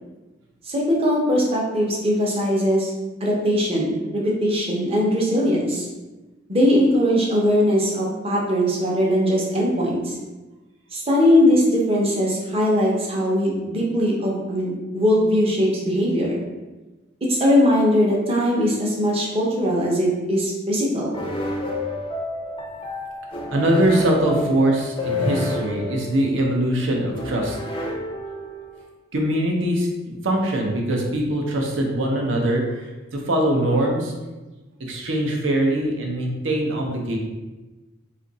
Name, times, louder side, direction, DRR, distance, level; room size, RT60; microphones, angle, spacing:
voice 1, 0.7-2.9 3.2-5.9 6.5-10.2 10.9-16.4 17.2-21.2, equal, 30° right, -3 dB, 0.7 m, -20 dB
sound 1, 21.1-28.8, left 2 dB, 25° left, 0.5 m, -30 dB
voice 2, 23.5-27.6 29.1-34.1 34.8-37.2, right 1 dB, 65° right, 0 dB, 0.6 m, -22 dB
2.6 x 2.5 x 3.9 m, 1.2 s
head